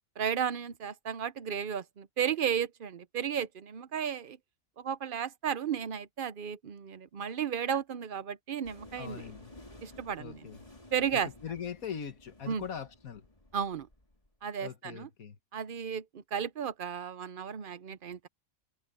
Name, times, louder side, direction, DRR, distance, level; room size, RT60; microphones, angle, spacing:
voice 1, 0.2-4.4 4.8-9.2 9.8-10.5 10.9-11.3 12.5-12.6 13.5-13.9 14.4-15.1 15.5-18.3, right 8 dB, 50° right, 0.7 m, -34 dB
sound 1, 8.6-14.3, left 1 dB, 25° left, 3.4 m, -54 dB
voice 2, 9.0-9.5 10.2-10.6 11.1-13.3 14.6-15.4, left 7 dB, 90° left, 1.9 m, -41 dB
omnidirectional pair, 1.4 m